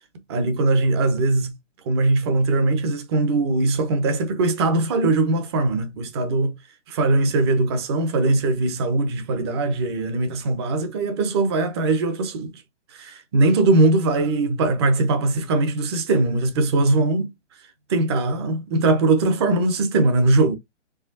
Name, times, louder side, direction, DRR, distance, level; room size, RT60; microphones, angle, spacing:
voice 1, 0.3-1.5 1.8-6.5 6.9-12.6 12.9-17.3 17.9-20.6, right 2 dB, 20° right, 0.7 m, -21 dB
4.8 x 3.3 x 2.5 m
hypercardioid pair, 150°, 37 cm